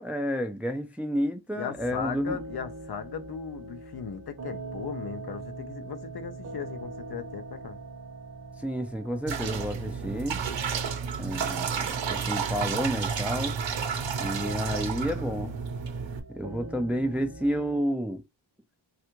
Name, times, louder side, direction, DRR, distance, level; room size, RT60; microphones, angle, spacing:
voice 1, 0.0-2.4 8.6-10.4 11.2-13.6 14.2-15.6 16.3-18.2, equal, 5° right, 0.4 m, -30 dB
voice 2, 1.5-7.8, left 7 dB, 55° left, 0.6 m, -37 dB
sound 1, 1.7-17.8, right 3 dB, 35° right, 0.8 m, -43 dB
sound 2, 9.3-16.2, right 6 dB, 75° right, 0.8 m, -31 dB
3.3 x 2.4 x 2.9 m
wide cardioid pair, 130°, 45 cm